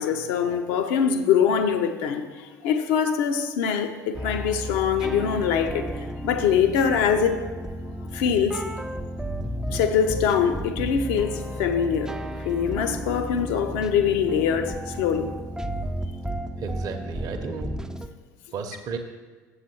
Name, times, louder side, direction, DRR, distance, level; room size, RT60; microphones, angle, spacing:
voice 1, 0.0-5.9 6.2-7.5 8.1-8.6 9.7-12.2 12.4-15.3, left 7 dB, 60° left, 7 dB, 0.7 m, -23 dB
sound 1, 4.1-18.1, equal, 5° right, 0.4 m, -33 dB
voice 2, 16.6-17.7 18.5-19.0, right 5 dB, 40° right, 3 dB, 0.8 m, -33 dB
7.5 x 6.6 x 4.4 m, 1.4 s
figure-of-eight pair, 65°, 10 cm